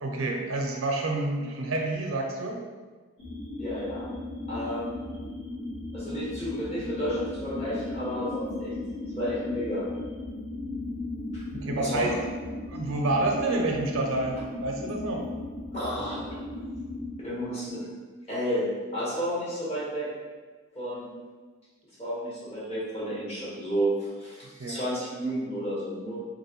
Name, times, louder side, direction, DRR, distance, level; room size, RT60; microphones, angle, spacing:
voice 1, 0.0-2.6 11.6-12.1 12.7-15.2 24.6-24.9, right 2 dB, 85° right, 1 dB, 0.5 m, -28 dB
sound 1, 3.2-17.1, left 2 dB, 60° left, 1.1 m, -36 dB
voice 2, 3.6-4.1 4.5-5.0 5.9-8.7 9.2-9.9 11.3-11.4 11.8-12.2 15.7-16.4 17.2-17.9 18.3-20.1 20.7-21.1 22.0-26.2, equal, 30° left, -8 dB, 1.2 m, -31 dB
3.3 x 2.6 x 2.9 m, 1.4 s
head